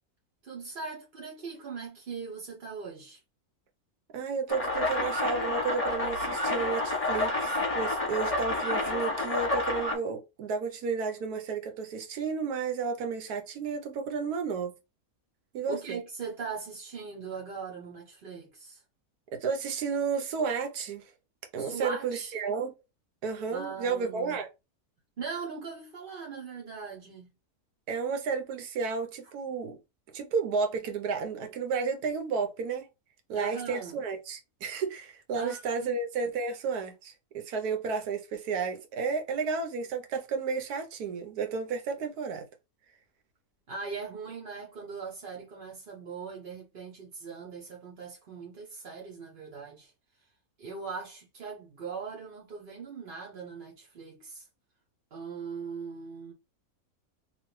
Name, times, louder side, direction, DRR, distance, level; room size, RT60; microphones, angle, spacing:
voice 1, 0.4-3.2 15.7-18.8 21.6-22.4 23.5-24.4 25.2-27.3 28.9-29.0 33.3-34.0 35.3-35.9 43.7-49.9 50.2-50.3 50.6-54.5 55.1-56.3, right 5 dB, 45° right, 0.7 m, -40 dB
voice 2, 4.1-14.7 15.5-16.0 19.4-21.0 21.5-22.7 23.2-24.5 27.9-29.8 30.1-32.8 33.3-42.4, right 5 dB, 85° right, 1.2 m, -32 dB
sound 1, 4.5-10.0, left 2 dB, 25° left, 1.0 m, -29 dB
3.0 x 2.5 x 3.1 m
omnidirectional pair, 1.6 m